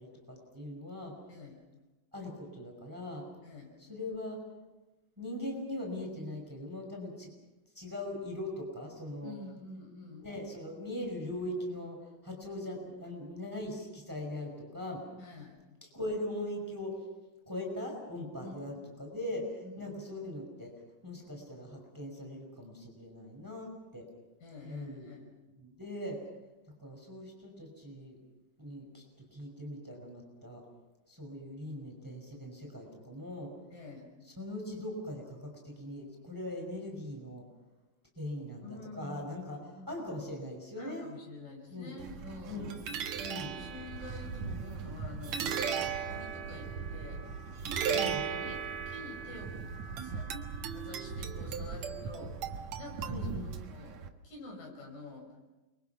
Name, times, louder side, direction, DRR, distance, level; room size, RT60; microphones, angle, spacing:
voice 1, 0.0-1.1 2.1-3.3 3.9-4.4 5.2-7.3 7.8-9.3 10.2-15.0 15.9-17.0 17.5-20.7 21.0-24.1 24.6-25.1 25.6-26.2 26.8-28.2 28.6-29.0 29.3-30.6 31.1-33.5 34.4-37.4 38.2-39.6 39.9-41.1 41.7-42.0 42.5-42.7 43.2-43.5 47.9-48.2 53.1-53.5, left 1 dB, 5° right, 1 dB, 5.3 m, -40 dB
voice 2, 1.3-1.6 3.4-3.8 9.2-10.3 15.2-15.6 18.4-18.7 19.6-20.0 24.4-25.3 33.7-34.1 38.6-40.0 40.8-42.7 43.5-47.2 47.7-48.1 48.4-49.7 50.0-50.3 50.7-52.4 52.8-53.3 53.6-54.0 54.2-55.3, left 2 dB, 65° left, 1 dB, 7.4 m, -48 dB
sound 1, 42.0-54.1, right 6 dB, 60° right, 2.2 m, -37 dB
29.5 x 24.0 x 5.9 m, 1.1 s
omnidirectional pair, 4.3 m